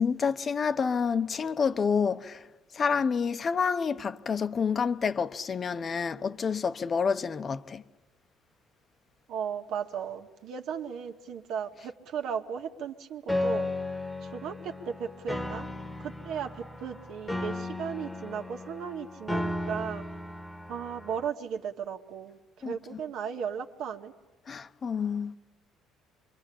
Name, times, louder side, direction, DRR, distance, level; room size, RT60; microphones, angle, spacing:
voice 1, 0.0-2.4 2.7-7.8 22.6-22.7 24.5-25.4, left 6 dB, 35° left, 1.0 m, -28 dB
voice 2, 9.3-15.7 16.0-20.0 20.7-24.1, right 7 dB, 70° right, 2.0 m, -36 dB
Piano, 13.3-21.3, left 1 dB, 5° left, 1.5 m, -35 dB
27.0 x 23.0 x 8.7 m
cardioid pair, 120°, 0 cm